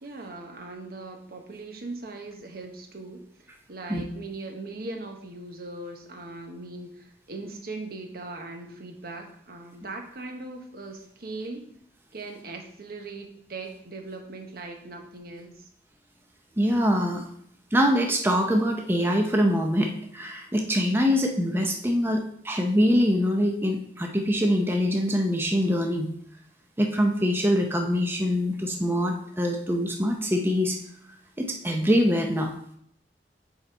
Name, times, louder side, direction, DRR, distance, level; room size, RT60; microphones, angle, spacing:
voice 1, 0.0-11.6 12.1-15.7, right 2 dB, 60° right, 4 dB, 1.0 m, -39 dB
voice 2, 16.6-17.2 17.7-26.1 26.8-30.8 31.4-32.5, equal, 15° right, 2 dB, 0.6 m, -24 dB
7.0 x 3.9 x 4.5 m, 0.68 s
head